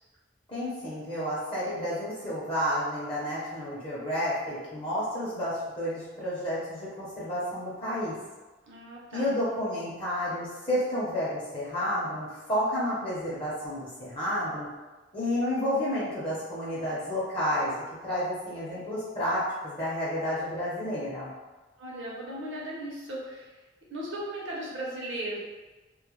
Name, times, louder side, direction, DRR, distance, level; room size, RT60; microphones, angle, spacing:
voice 1, 0.5-8.2 9.1-14.7 15.1-21.3, equal, 30° left, -8 dB, 0.6 m, -31 dB
voice 2, 8.6-9.4 21.8-23.5 23.9-25.4, right 1 dB, 70° right, -5 dB, 0.7 m, -37 dB
2.2 x 2.0 x 3.0 m, 1.2 s
head